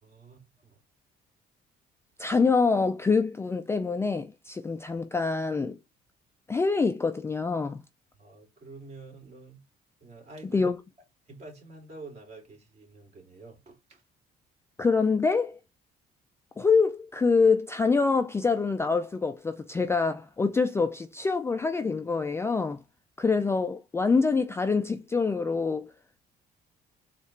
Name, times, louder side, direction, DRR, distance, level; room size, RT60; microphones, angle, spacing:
voice 1, 0.0-0.8 8.2-9.6 10.0-10.6 11.3-14.0, right 3 dB, 40° right, 2.6 m, -47 dB
voice 2, 2.2-5.8 6.5-7.8 10.5-10.8 14.8-15.6 16.6-22.8 23.2-25.9, left 4 dB, 15° left, 0.3 m, -25 dB
4.2 x 2.5 x 4.5 m
cardioid pair, 110°, 17 cm